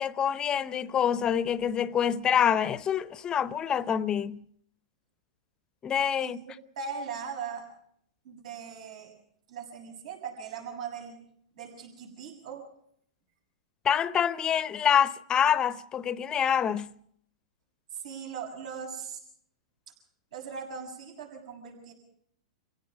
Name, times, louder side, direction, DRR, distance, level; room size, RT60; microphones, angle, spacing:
voice 1, 0.0-4.4 5.8-6.4 13.8-16.9, left 8 dB, 20° left, 0.7 m, -26 dB
voice 2, 6.2-7.7 8.2-9.1 9.5-11.2 11.6-12.7 17.9-19.2 20.3-21.9, right 6 dB, 70° right, 6.8 m, -39 dB
28.0 x 16.5 x 6.1 m
hypercardioid pair, 135°, 4 cm